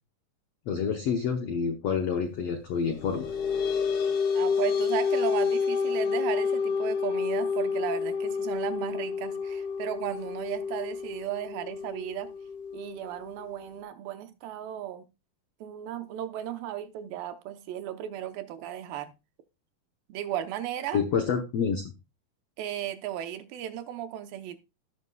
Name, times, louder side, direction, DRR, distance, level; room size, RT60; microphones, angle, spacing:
voice 1, 0.7-3.3 20.9-21.8, left 6 dB, 85° left, 1.3 m, -28 dB
sound 1, 2.8-13.8, left 5 dB, 60° left, 1.4 m, -29 dB
voice 2, 4.3-12.3 12.7-15.1 15.6-19.1 20.1-21.0 22.6-24.6, right 11 dB, 80° right, 2.6 m, -35 dB
17.0 x 5.7 x 2.2 m
omnidirectional pair, 4.1 m